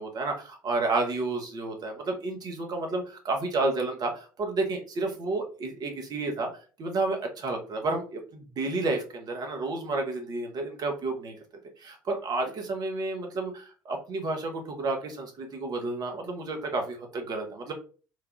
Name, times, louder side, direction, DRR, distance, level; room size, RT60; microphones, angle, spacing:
voice 1, 0.0-6.5 6.8-11.3 11.8-17.7, right 3 dB, 40° right, 3 dB, 0.8 m, -31 dB
3.2 x 2.3 x 2.4 m, 0.37 s
figure-of-eight pair, 60°, 11 cm